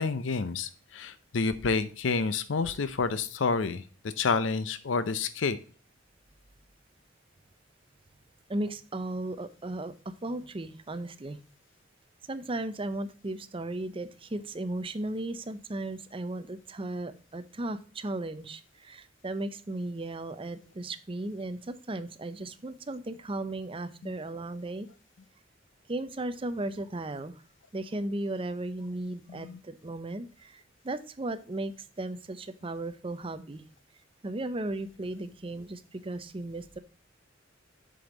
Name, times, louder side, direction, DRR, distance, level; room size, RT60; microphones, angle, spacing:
voice 1, 0.0-3.8 4.2-5.6 24.0-24.1 29.3-29.6, left 4 dB, 75° left, 13 dB, 0.6 m, -29 dB
voice 2, 8.5-11.4 12.3-24.9 25.9-27.4 27.7-33.6 34.2-36.8, right 2 dB, 25° right, 12 dB, 0.6 m, -36 dB
7.6 x 5.3 x 3.8 m, 0.39 s
head